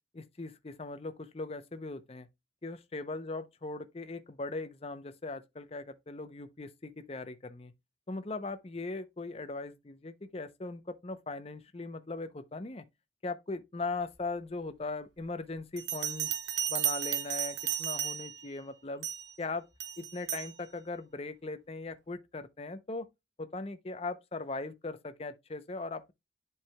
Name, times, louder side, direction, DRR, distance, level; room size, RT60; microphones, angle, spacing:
voice 1, 0.1-2.3 2.6-7.7 8.1-12.8 13.2-16.3 16.7-19.1 19.4-19.6 20.0-23.1 23.4-26.1, left 3 dB, 35° left, 0.6 m, -39 dB
Bell, 15.8-18.5 19.0-19.3 19.8-20.5, right 11 dB, 70° right, 0.8 m, -34 dB
10.5 x 4.7 x 2.2 m
head